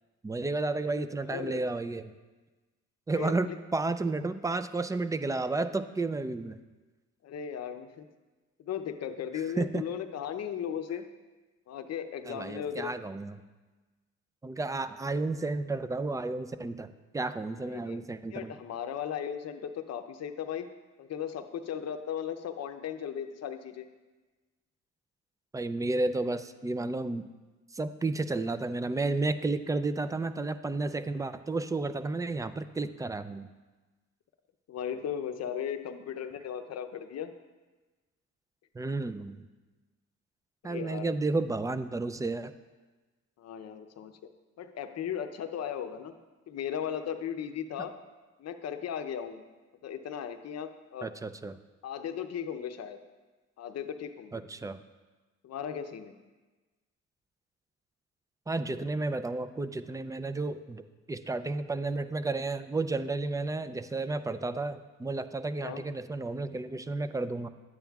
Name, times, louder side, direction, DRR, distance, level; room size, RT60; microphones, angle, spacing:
voice 1, 0.2-2.1 3.1-6.6 9.6-9.8 12.3-13.4 14.4-18.6 25.5-27.3 27.7-33.5 38.8-39.5 40.6-42.5 51.0-51.6 54.3-54.8 58.5-67.5, right 3 dB, 10° right, 12 dB, 0.3 m, -32 dB
voice 2, 0.8-1.6 3.1-3.6 7.2-8.1 8.6-11.1 11.7-12.9 17.7-18.0 18.3-20.7 21.0-23.9 34.7-37.3 40.7-41.2 43.4-44.1 44.6-46.1 46.5-47.9 48.4-49.4 49.8-51.1 51.8-53.0 53.6-54.4 55.4-56.1 65.6-65.8, left 8 dB, 60° left, 8 dB, 0.6 m, -37 dB
11.0 x 8.8 x 2.3 m, 1.2 s
cardioid pair, 90°, 30 cm